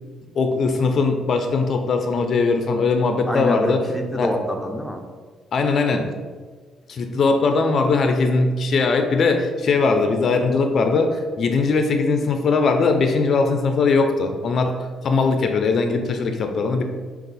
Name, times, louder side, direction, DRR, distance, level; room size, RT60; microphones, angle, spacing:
voice 1, 0.4-3.8 4.1-4.3 5.5-6.1 6.9-14.7 15.0-16.8, left 4 dB, 50° left, 5 dB, 0.4 m, -20 dB
voice 2, 3.3-5.0, equal, ahead, 2 dB, 0.6 m, -26 dB
5.3 x 2.4 x 4.0 m, 1.5 s
cardioid pair, 115°, 0 cm